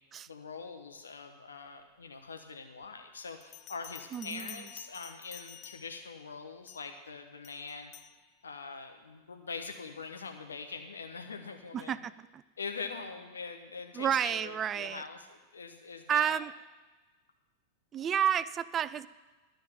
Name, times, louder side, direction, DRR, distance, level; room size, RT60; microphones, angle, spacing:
voice 1, 0.3-7.9 8.4-12.0 12.6-16.4, left 4 dB, 70° left, 5 dB, 1.3 m, -43 dB
Bell, 3.4-6.1 6.7-7.0 7.4-8.2, left 11 dB, 35° left, 0.4 m, -50 dB
voice 2, 4.1-4.7 11.7-12.4 13.9-15.0 16.1-16.5 17.9-19.1, right 9 dB, 25° right, 17 dB, 0.4 m, -31 dB
13.0 x 5.2 x 9.0 m, 1.3 s
figure-of-eight pair, 90°, 0 cm